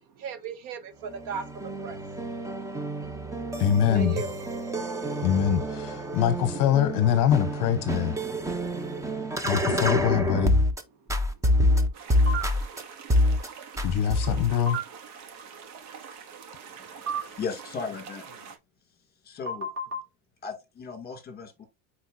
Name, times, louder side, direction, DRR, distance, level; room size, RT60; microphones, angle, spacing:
voice 1, 0.1-2.0 3.5-3.6 3.9-4.3 9.7-9.9 11.6-12.0, right 6 dB, 50° right, 1.2 m, -37 dB
sound 1, 1.0-10.8 11.1-12.8 13.1-13.5 13.8-14.5, equal, 5° right, 0.6 m, -27 dB
voice 2, 3.6-4.2 5.2-8.1 9.4-10.6 13.8-14.8, left 9 dB, 45° left, 0.8 m, -24 dB
sound 2, 11.9-18.6, right 6 dB, 90° right, 1.9 m, -45 dB
sound 3, 12.3-12.5 14.7-14.8 17.1-17.2 19.5-20.0, right 2 dB, 30° right, 2.8 m, -30 dB
voice 3, 17.2-18.2 19.2-19.7 20.4-21.6, left 5 dB, 20° left, 2.2 m, -36 dB
8.8 x 4.4 x 2.6 m
cardioid pair, 165°, 43 cm